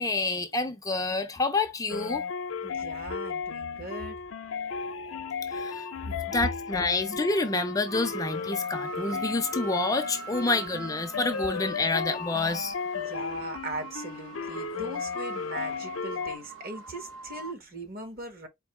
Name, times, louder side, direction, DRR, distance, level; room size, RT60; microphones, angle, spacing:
voice 1, 0.0-2.2 5.5-12.7, left 3 dB, 15° left, 0.5 m, -28 dB
sound 1, 1.9-16.4, left 5 dB, 80° left, 0.6 m, -35 dB
voice 2, 2.6-4.2 12.9-18.5, right 2 dB, 50° right, 1.3 m, -39 dB
sound 2, 7.9-17.5, right 4 dB, 70° right, 0.9 m, -43 dB
4.5 x 2.7 x 3.2 m
head